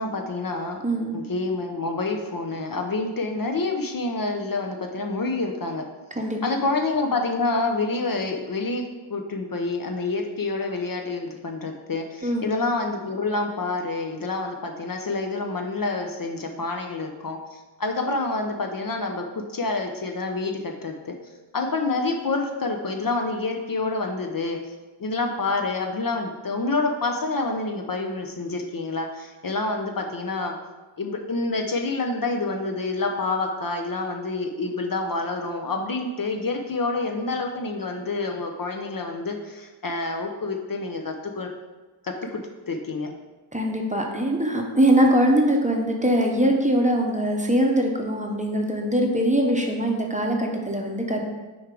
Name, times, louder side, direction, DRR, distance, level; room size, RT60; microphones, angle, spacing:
voice 1, 0.0-0.8 1.1-5.8 6.4-8.8 9.1-17.4 17.8-19.2 19.5-21.1 21.5-24.6 25.0-30.5 31.0-41.5 42.0-42.4 42.7-43.1, left 3 dB, 45° left, 3 dB, 0.6 m, -27 dB
voice 2, 0.8-1.2 6.2-6.4 12.2-12.4 43.5-51.2, right 1 dB, 15° right, 1 dB, 0.7 m, -22 dB
6.1 x 4.7 x 3.8 m, 1.2 s
wide cardioid pair, 95°, 49 cm